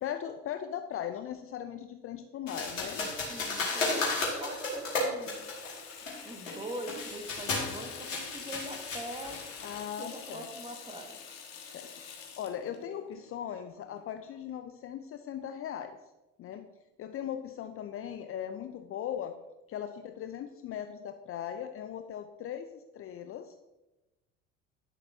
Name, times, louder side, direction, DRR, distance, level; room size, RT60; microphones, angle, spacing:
voice 1, 0.0-3.1 9.6-10.5 11.6-11.9 12.4-15.9 16.4-16.7 17.0-19.3 19.7-23.6, left 9 dB, 35° left, 7 dB, 0.6 m, -39 dB
sound 1, 2.5-9.8, left 3 dB, 85° left, 2.2 m, -34 dB
voice 2, 3.3-5.4 6.2-9.4 10.0-11.2, right 1 dB, 15° right, 2 dB, 1.8 m, -43 dB
Water tap faucet / Sink (filling or washing), 5.1-14.4, left 7 dB, 55° left, 1.5 m, -47 dB
11.0 x 6.8 x 2.8 m, 1.0 s
hypercardioid pair, 65°, 38 cm